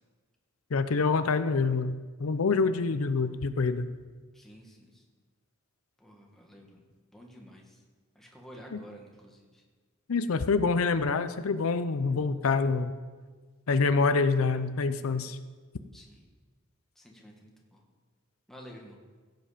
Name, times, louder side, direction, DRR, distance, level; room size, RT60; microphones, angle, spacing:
voice 1, 0.7-3.9 8.7-8.8 10.1-13.0 13.7-15.4, left 4 dB, 85° left, 11 dB, 0.6 m, -26 dB
voice 2, 4.3-5.0 6.0-6.8 7.1-7.8 8.2-9.6 15.9-16.2 17.0-17.8 18.5-19.0, equal, ahead, -1 dB, 1.8 m, -51 dB
16.0 x 8.0 x 5.1 m, 1.4 s
head